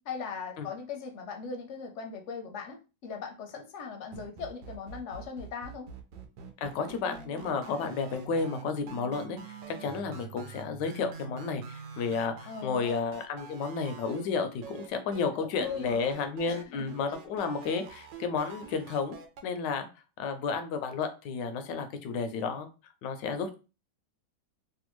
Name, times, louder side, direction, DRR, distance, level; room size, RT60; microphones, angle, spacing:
voice 1, 0.0-5.9 12.4-12.9 15.3-16.0 16.5-16.9, left 5 dB, 60° left, 4 dB, 0.8 m, -39 dB
sound 1, 4.1-14.3 14.6-15.3 15.6-19.4, right 6 dB, 90° right, 1.3 m, -47 dB
voice 2, 6.6-19.9 20.2-22.7 23.0-23.5, left 5 dB, 85° left, 8 dB, 1.2 m, -32 dB
sound 2, 6.9-12.8, right 6 dB, 65° right, 1.2 m, -47 dB
3.4 x 2.2 x 3.0 m, 0.31 s
omnidirectional pair, 1.9 m